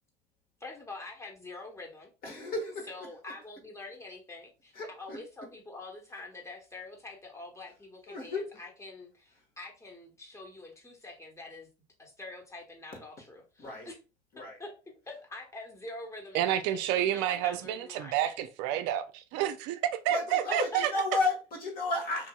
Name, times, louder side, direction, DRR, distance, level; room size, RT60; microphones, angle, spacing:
voice 1, 0.6-2.1 2.9-11.7 12.0-14.0 14.4-14.7 15.1-18.4 20.5-21.0, left 2 dB, 15° left, 1.2 m, -45 dB
voice 2, 2.2-2.9 4.7-5.2 8.1-8.5 13.6-13.9 14.3-14.6 20.1-22.3, left 3 dB, 50° left, 1.5 m, -32 dB
voice 3, 16.3-20.9, right 11 dB, 70° right, 0.4 m, -29 dB
3.0 x 2.7 x 2.2 m
hypercardioid pair, 70°, 19 cm